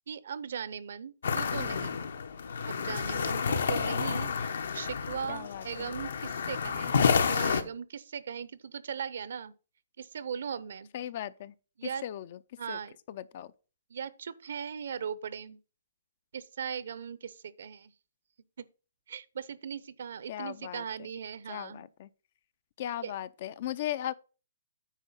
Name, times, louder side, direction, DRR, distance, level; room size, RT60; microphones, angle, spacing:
voice 1, 0.1-2.0 2.6-9.5 10.0-10.9 11.8-12.0 12.6-12.9 13.9-15.6 16.3-17.9 18.6-18.7 19.1-21.9 23.0-23.1, right 7 dB, 60° right, 0.7 m, -39 dB
sound 1, 1.2-7.6, left 6 dB, 70° left, 1.1 m, -30 dB
voice 2, 5.3-5.9 10.9-11.5 12.0-12.4 12.7-12.8 13.1-13.5 20.3-20.8 21.5-22.1 22.8-24.1, left 12 dB, 40° left, 0.4 m, -37 dB
9.1 x 4.5 x 5.6 m
hypercardioid pair, 170°, 0 cm